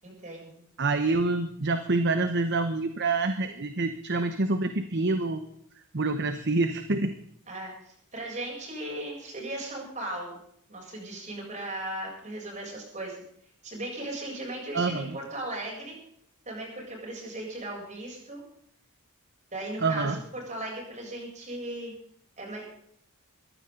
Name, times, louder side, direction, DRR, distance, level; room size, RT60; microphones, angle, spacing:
voice 1, 0.0-0.6 7.5-10.4 10.7-13.2 13.6-16.0 16.5-18.4 19.5-21.9 22.4-22.6, right 1 dB, 35° right, -1 dB, 7.8 m, -37 dB
voice 2, 0.8-5.4 5.9-7.2 14.7-15.2 19.8-20.2, right 3 dB, 50° right, 9 dB, 1.1 m, -27 dB
22.0 x 15.5 x 4.0 m, 0.68 s
head